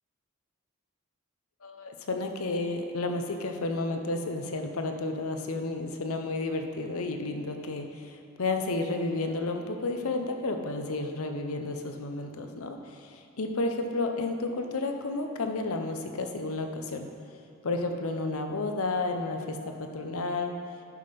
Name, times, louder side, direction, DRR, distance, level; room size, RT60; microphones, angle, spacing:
voice 1, 1.6-13.1 13.4-17.1 17.6-20.5, left 2 dB, 85° left, 5 dB, 0.8 m, -31 dB
11.0 x 5.4 x 5.3 m, 2.4 s
head